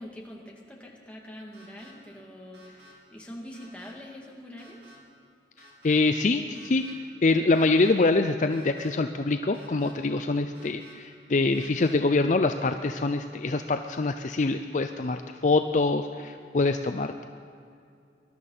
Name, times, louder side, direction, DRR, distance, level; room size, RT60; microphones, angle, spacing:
voice 1, 0.0-4.9, left 1 dB, 5° left, -2 dB, 2.0 m, -44 dB
sound 1, 1.5-1.9 2.5-2.9 3.5-3.9 4.6-5.0 5.6-6.0 6.5-6.9 7.5-7.9 8.5-8.9 9.5-9.9 10.5-10.9 11.5-11.9, right 1 dB, 70° right, 3.9 m, -54 dB
voice 2, 5.6-17.2, left 3 dB, 45° left, 7 dB, 0.5 m, -25 dB
20.5 x 12.0 x 5.6 m, 2.4 s
head